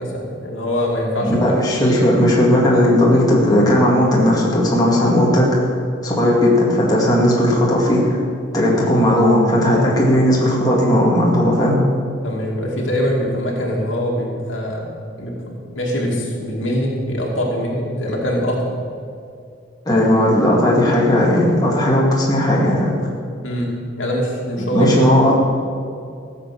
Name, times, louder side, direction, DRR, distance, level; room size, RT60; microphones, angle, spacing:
voice 1, 0.0-2.1 12.2-14.9 15.2-18.7 23.4-23.7 24.0-24.9 25.2-25.3, equal, 85° left, -2 dB, 2.5 m, -23 dB
voice 2, 1.2-5.7 6.0-8.2 8.5-11.8 19.9-22.9 24.7-25.4, left 1 dB, 20° left, -5 dB, 2.3 m, -16 dB
14.5 x 7.7 x 6.1 m, 2.4 s
head